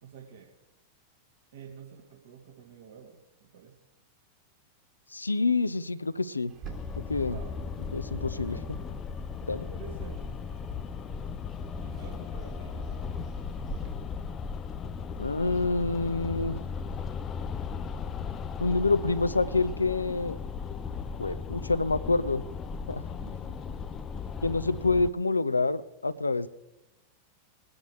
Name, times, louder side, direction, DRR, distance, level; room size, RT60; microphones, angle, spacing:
voice 1, 0.0-0.5 1.5-3.8 7.2-7.6 8.1-8.7 9.7-10.3 11.8-12.9 23.0-23.8, right 7 dB, 60° right, -1 dB, 2.4 m, -49 dB
voice 2, 5.1-6.5 7.1-7.4 7.9-8.6 9.5-9.7 15.2-16.6 18.6-20.4 21.2-22.4 22.9-23.0 24.4-26.5, left 3 dB, 80° left, 16 dB, 0.6 m, -27 dB
Bird, 6.5-13.9, right 7 dB, 35° right, 2.3 m, -48 dB
sound 1, 6.6-25.1, left 6 dB, 25° left, 0.5 m, -37 dB
22.0 x 9.6 x 3.3 m, 0.93 s
figure-of-eight pair, 90°, 0 cm